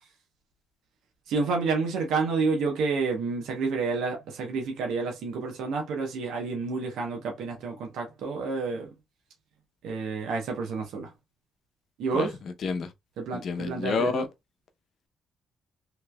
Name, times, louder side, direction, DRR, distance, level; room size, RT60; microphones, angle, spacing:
voice 1, 1.3-8.9 9.8-11.1 12.0-12.4 13.2-14.3, right 4 dB, 80° right, 0.9 m, -29 dB
voice 2, 12.6-12.9 13.3-14.3, left 5 dB, 60° left, 0.8 m, -29 dB
3.2 x 3.1 x 2.2 m
cardioid pair, 90°, 0 cm